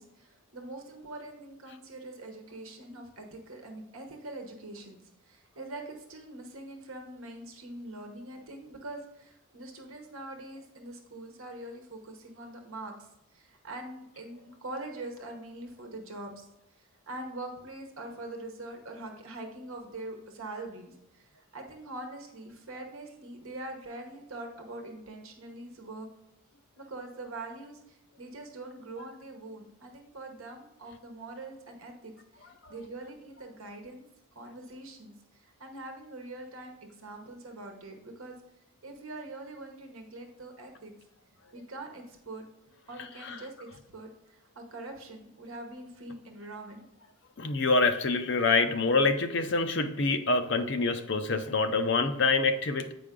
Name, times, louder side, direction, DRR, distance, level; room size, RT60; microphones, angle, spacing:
voice 1, 0.0-16.3 17.1-26.1 26.8-34.0 34.3-38.4 38.8-40.9 41.5-42.4 42.9-46.9, right 2 dB, 75° right, 3 dB, 1.1 m, -43 dB
voice 2, 47.4-52.9, left 3 dB, 55° left, 8 dB, 0.6 m, -26 dB
8.6 x 5.1 x 3.7 m, 0.85 s
head